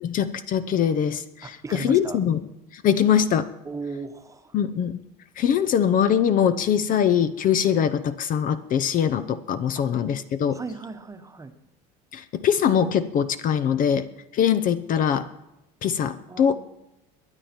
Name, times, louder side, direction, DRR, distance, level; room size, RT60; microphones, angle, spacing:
voice 1, 0.0-2.4 2.7-3.5 4.5-5.0 5.4-10.6 12.1-14.1 14.3-15.3 15.8-16.6, left 8 dB, 40° left, 11 dB, 0.7 m, -22 dB
voice 2, 1.4-2.2 3.6-4.6 9.7-9.9 10.5-11.5 16.3-16.6, right 4 dB, 15° right, 7 dB, 1.1 m, -36 dB
22.0 x 8.9 x 4.4 m, 0.93 s
supercardioid pair, 115°, 20 cm